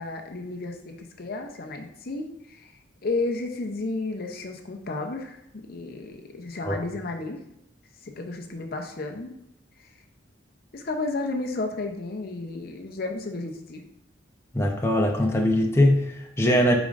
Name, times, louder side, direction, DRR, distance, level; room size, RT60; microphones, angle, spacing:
voice 1, 0.0-2.7 3.0-7.4 8.0-9.3 9.8-9.9 10.7-13.8, left 2 dB, 50° left, 3 dB, 0.7 m, -32 dB
voice 2, 14.5-16.8, left 1 dB, 15° left, 0 dB, 0.7 m, -21 dB
8.5 x 5.1 x 2.5 m, 0.82 s
head